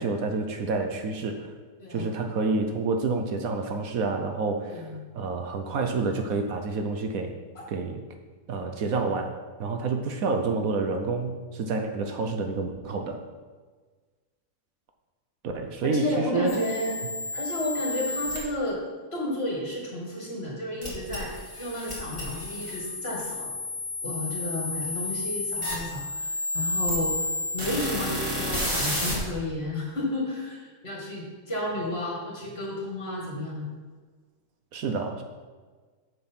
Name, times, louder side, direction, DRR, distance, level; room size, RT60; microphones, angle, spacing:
voice 1, 0.0-1.5 1.9-7.3 7.7-8.0 8.5-9.3 9.6-13.2 15.5-16.5 34.7-35.2, right 3 dB, 70° right, 5 dB, 1.2 m, -28 dB
voice 2, 4.7-5.0 15.8-16.9 17.3-18.8 19.1-23.6 24.0-27.1 27.5-33.7, left 1 dB, 40° left, -2 dB, 2.4 m, -32 dB
sound 1, 16.5-18.4 20.8-29.2, left 2 dB, 20° right, 2.6 m, -31 dB
7.2 x 7.0 x 5.7 m, 1.4 s
omnidirectional pair, 1.6 m